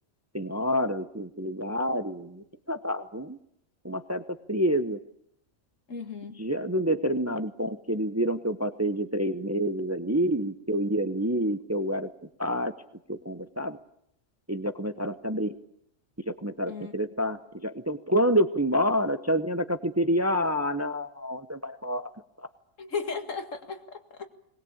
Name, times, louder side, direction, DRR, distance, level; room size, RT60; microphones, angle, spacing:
voice 1, 0.3-3.4 3.8-5.0 6.4-12.1 12.4-12.7 13.1-13.8 14.5-15.5 16.3-22.1 22.4-22.5, equal, 15° right, 10 dB, 0.7 m, -28 dB
voice 2, 5.9-6.4 16.7-16.9 22.8-24.3, left 5 dB, 60° left, 7 dB, 2.4 m, -35 dB
21.5 x 20.0 x 8.8 m, 0.74 s
omnidirectional pair, 1.5 m